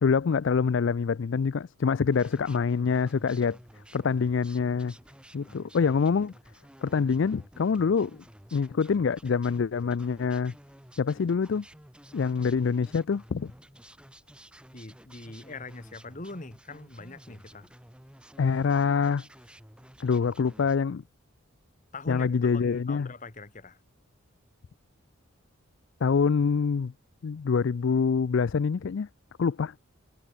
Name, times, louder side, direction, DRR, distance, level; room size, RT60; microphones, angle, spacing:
voice 1, 0.0-3.6 3.9-4.9 5.3-6.3 6.8-8.2 8.5-10.5 11.0-11.6 12.1-13.5 18.4-19.3 20.0-21.0 22.1-23.1 26.0-26.9 27.2-29.1 29.4-29.7, left 5 dB, 60° left, 0.4 m, -25 dB
sound 1, 2.1-20.8, equal, 5° right, 3.5 m, -53 dB
voice 2, 14.7-17.7 21.9-23.8, left 3 dB, 35° left, 1.6 m, -43 dB
head